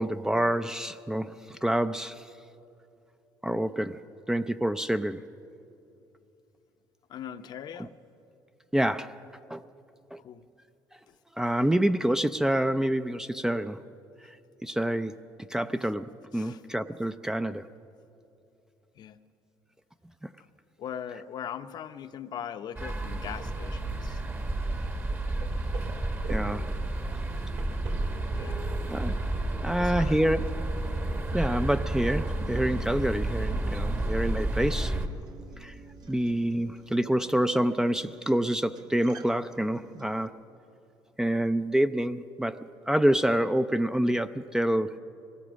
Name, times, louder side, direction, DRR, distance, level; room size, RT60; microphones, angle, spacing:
voice 1, 0.0-2.3 3.4-4.0 4.3-5.2 8.7-9.2 9.5-9.6 10.1-10.2 11.4-13.8 14.2-14.3 14.6-15.2 15.5-17.7 26.3-26.7 28.9-29.2 29.6-30.4 31.3-35.0 35.6-35.7 36.1-40.3 41.2-45.0, right 1 dB, 5° right, 11 dB, 0.4 m, -27 dB
voice 2, 7.1-8.0 10.2-10.5 11.1-11.2 16.3-16.6 18.9-19.2 20.8-24.2 28.3-28.7 29.8-30.5 31.3-31.5, left 9 dB, 60° left, 9 dB, 0.7 m, -40 dB
sound 1, 22.8-35.1, right 2 dB, 25° right, 1.2 m, -31 dB
sound 2, 23.4-23.8 24.1-32.9, right 4 dB, 85° right, 3.2 m, -46 dB
Acoustic guitar, 32.3-40.3, right 7 dB, 55° right, 1.5 m, -51 dB
23.0 x 18.5 x 6.3 m, 2.7 s
cardioid pair, 110°, 8 cm